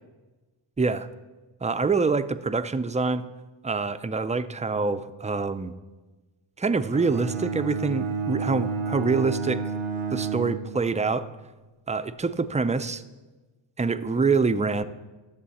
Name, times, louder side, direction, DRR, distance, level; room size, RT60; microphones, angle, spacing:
voice 1, 0.8-1.1 1.6-3.2 3.6-5.7 6.6-9.6 10.1-11.3 11.9-13.0 13.8-14.8, right 4 dB, 15° right, 12 dB, 0.4 m, -25 dB
Bowed string instrument, 6.9-11.2, right 5 dB, 85° right, 0.9 m, -30 dB
11.0 x 6.7 x 4.2 m, 1.2 s
cardioid pair, 40°, 50 cm